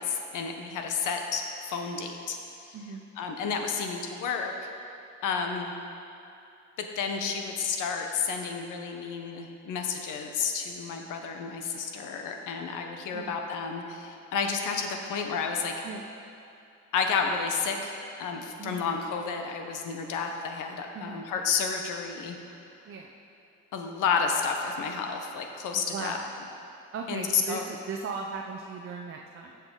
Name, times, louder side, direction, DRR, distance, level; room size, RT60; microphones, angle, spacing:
voice 1, 0.0-2.8 3.2-4.5 5.2-5.7 6.8-15.7 16.9-17.9 18.2-22.4 23.7-26.2 27.1-27.7, left 5 dB, 85° left, 3 dB, 1.0 m, -31 dB
voice 2, 2.7-3.1 13.1-13.4 15.8-16.1 18.6-18.8 20.9-21.3 22.9-23.1 25.7-26.3 26.9-29.6, right 5 dB, 45° right, 1 dB, 0.7 m, -38 dB
15.0 x 5.8 x 3.8 m, 2.7 s
cardioid pair, 90°, 30 cm